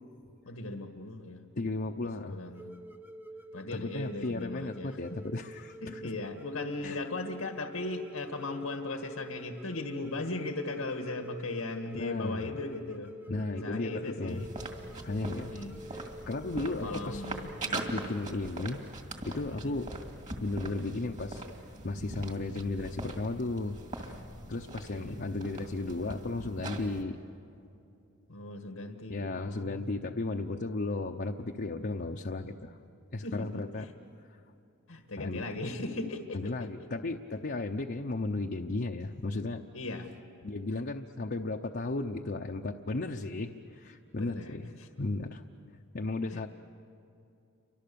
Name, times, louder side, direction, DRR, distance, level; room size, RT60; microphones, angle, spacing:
voice 1, 0.5-1.4 2.3-2.7 3.5-5.0 5.8-13.1 13.5-14.5 15.5-15.8 16.8-17.9 19.6-19.7 25.0-25.1 28.3-29.9 33.2-33.9 34.9-36.9 39.7-40.1 44.2-44.9 46.3-46.5, left 2 dB, 90° left, 4 dB, 1.7 m, -38 dB
voice 2, 1.5-2.4 3.8-6.0 6.8-7.0 11.9-12.6 13.3-14.5 15.0-15.6 15.9-17.2 17.7-18.8 19.2-19.9 20.4-21.4 21.8-24.2 24.5-27.2 29.1-32.8 33.1-33.8 35.2-35.4 36.3-39.6 40.4-44.7 45.0-46.5, left 2 dB, 50° left, 2 dB, 0.8 m, -35 dB
sound 1, 2.5-18.2, right 1 dB, 10° right, 0.8 m, -48 dB
sound 2, 14.3-27.0, right 2 dB, 35° right, 2.3 m, -41 dB
30.0 x 25.0 x 7.0 m, 2.6 s
head